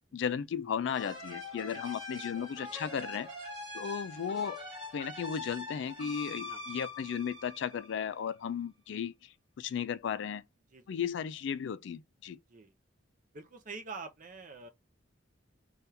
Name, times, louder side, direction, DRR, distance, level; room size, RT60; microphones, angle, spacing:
voice 1, 0.1-3.3 3.7-4.6 4.9-10.4 10.9-12.4, left 7 dB, 65° left, 0.3 m, -35 dB
sound 1, 0.8-8.3, left 2 dB, 25° right, 1.7 m, -43 dB
voice 2, 1.7-2.8 6.4-6.6 10.7-11.0 12.5-12.7 13.3-14.7, right 4 dB, 40° right, 0.6 m, -47 dB
3.4 x 2.4 x 2.7 m
head